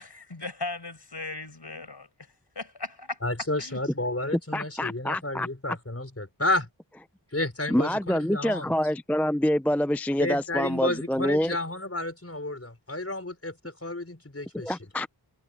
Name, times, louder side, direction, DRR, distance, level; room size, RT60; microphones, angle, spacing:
voice 1, 0.0-2.1 2.6-3.2 3.6-3.8, left 3 dB, 65° left, 5.4 m, -37 dB
voice 2, 3.2-6.7 7.3-8.7 10.2-14.7, left 2 dB, 35° left, 5.0 m, -31 dB
voice 3, 4.5-5.8 7.7-11.6 14.6-15.1, equal, 5° left, 0.4 m, -26 dB
wide cardioid pair, 40°, 43 cm